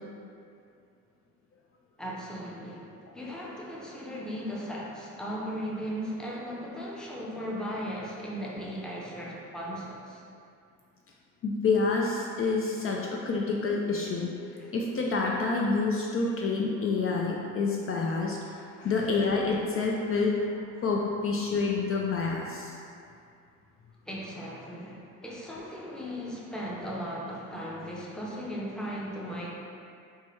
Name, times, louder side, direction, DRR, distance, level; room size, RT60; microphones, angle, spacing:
voice 1, 2.0-10.2 14.6-14.7 18.8-18.9 24.1-29.5, equal, ahead, -5 dB, 0.6 m, -37 dB
voice 2, 11.4-20.4 20.8-22.7, left 4 dB, 45° left, -2 dB, 0.4 m, -28 dB
4.5 x 2.2 x 3.1 m, 2.4 s
cardioid pair, 90°, 30 cm